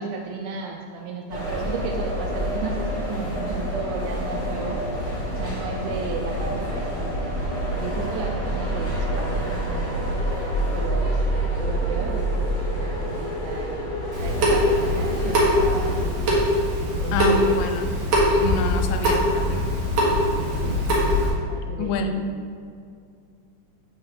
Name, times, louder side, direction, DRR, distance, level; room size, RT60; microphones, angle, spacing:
voice 1, 0.0-4.9 5.3-7.4 7.7-10.1 10.7-11.2 11.5-12.4 12.7-16.2 16.8-17.6 20.6-20.8 21.5-22.4, right 5 dB, 80° right, 1 dB, 1.8 m, -34 dB
sound 1, 1.3-16.1, equal, 55° left, 2.7 m, -27 dB
Water tap faucet / Sink (filling or washing) / Drip, 14.1-21.3, equal, 60° right, 2.3 m, -22 dB
voice 2, 17.1-17.9 18.3-19.6 21.8-22.2, left 4 dB, 85° left, 6 dB, 2.2 m, -27 dB
6.7 x 3.5 x 5.5 m, 2.3 s
omnidirectional pair, 3.9 m